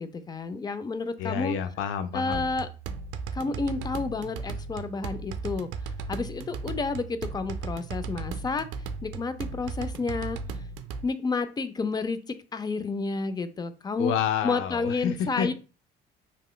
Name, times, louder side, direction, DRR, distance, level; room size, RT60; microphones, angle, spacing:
voice 1, 0.0-1.6 2.1-2.7 3.3-5.7 6.1-8.7 9.0-10.4 11.0-14.1 14.4-15.5, left 4 dB, 20° left, 11 dB, 0.4 m, -30 dB
voice 2, 1.2-2.5 14.0-15.5, left 8 dB, 75° left, 10 dB, 0.5 m, -29 dB
sound 1, 2.3-11.0, right 5 dB, 70° right, 0.5 m, -36 dB
3.0 x 2.9 x 2.2 m, 0.34 s
cardioid pair, 95°, 21 cm